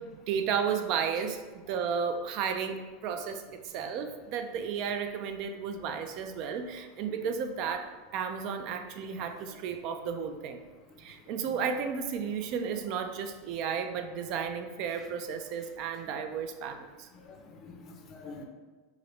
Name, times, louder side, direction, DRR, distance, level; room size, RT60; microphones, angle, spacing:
voice 1, 0.0-10.6 11.0-17.1, right 6 dB, 50° right, 7 dB, 0.3 m, -33 dB
voice 2, 9.2-9.6 11.5-11.6 15.0-15.1 17.1-18.5, left 3 dB, 35° left, 3 dB, 0.5 m, -48 dB
4.8 x 2.0 x 3.1 m, 1.3 s
supercardioid pair, 130°, 0 cm